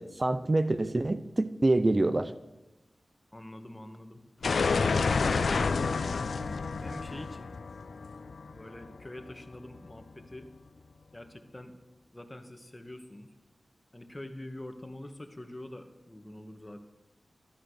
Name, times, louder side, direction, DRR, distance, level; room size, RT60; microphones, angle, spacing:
voice 1, 0.0-2.3, right 2 dB, 40° right, 13 dB, 0.8 m, -26 dB
voice 2, 3.3-4.2 4.8-5.4 5.8-6.1 6.8-7.6 8.5-10.6 11.1-11.8 12.1-13.3 13.9-16.8, left 1 dB, 25° left, 7 dB, 2.0 m, -44 dB
sound 1, 4.4-9.2, left 4 dB, 85° left, 0.6 m, -29 dB
15.0 x 12.0 x 6.7 m, 0.98 s
cardioid pair, 40°, 0 cm